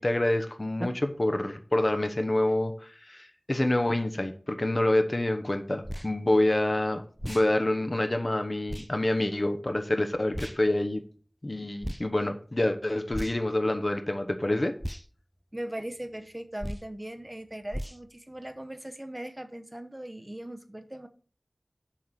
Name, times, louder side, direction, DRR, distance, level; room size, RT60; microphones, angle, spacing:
voice 1, 0.0-11.0 11.4-14.7, left 1 dB, 50° left, 7 dB, 1.0 m, -27 dB
sound 1, 5.8-6.1 7.2-7.5 8.7-8.9 10.3-10.6 11.8-12.1 13.1-13.5 14.8-15.0 16.6-16.9 17.7-18.0, equal, 5° right, 0.4 m, -36 dB
voice 2, 15.5-21.1, right 1 dB, 25° right, 8 dB, 0.9 m, -39 dB
7.3 x 4.5 x 6.7 m, 0.42 s
wide cardioid pair, 40°, 0 cm